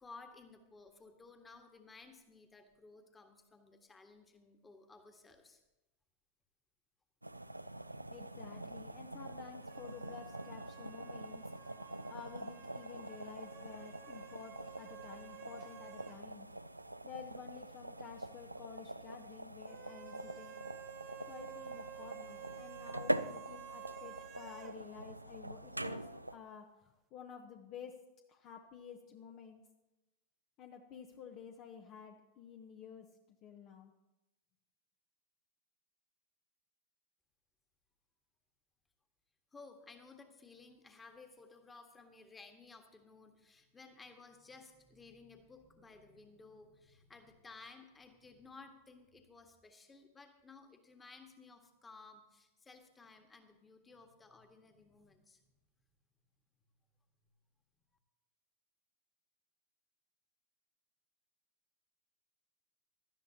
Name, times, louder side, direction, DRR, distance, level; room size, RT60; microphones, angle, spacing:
voice 1, 0.0-5.6 39.5-55.5, left 4 dB, 15° left, 6 dB, 1.6 m, -57 dB
sound 1, 7.2-26.4, right 1 dB, 85° right, 0.4 m, -44 dB
voice 2, 8.1-11.4 12.1-16.5 17.0-20.6 21.2-28.0 28.3-29.6 30.6-33.1 33.4-33.9, left 7 dB, 40° left, 4 dB, 0.9 m, -52 dB
sound 2, 9.7-16.2 16.5-16.6 19.7-24.8, right 11 dB, 30° right, 0.6 m, -53 dB
17.0 x 12.5 x 2.8 m, 0.99 s
figure-of-eight pair, 90°, 0 cm